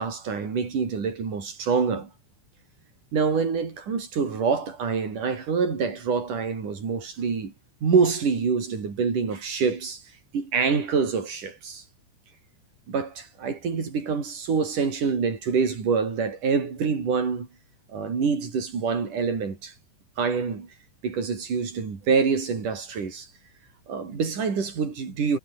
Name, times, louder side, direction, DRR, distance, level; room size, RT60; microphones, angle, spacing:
voice 1, 0.0-2.1 3.1-7.5 7.8-10.0 10.3-11.8 12.9-17.5 17.9-19.7 20.2-20.7 21.0-23.3 23.9-25.4, right 5 dB, 40° right, 5.8 m, -26 dB
omnidirectional pair, 5.6 m